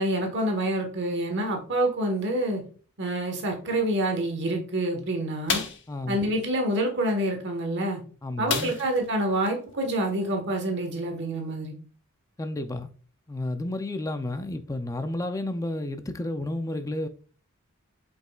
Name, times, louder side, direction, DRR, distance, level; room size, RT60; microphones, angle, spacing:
voice 1, 0.0-2.6 3.0-5.6 6.1-8.0 8.4-11.8, right 1 dB, 55° right, 1.4 m, -27 dB
sound 1, 5.5-5.9 8.5-9.1 9.4-9.5 9.9-10.1, left 5 dB, 60° left, 1.1 m, -29 dB
voice 2, 8.2-8.7 12.4-12.9 13.3-17.1, left 1 dB, 15° left, 0.5 m, -31 dB
7.6 x 5.3 x 2.4 m
head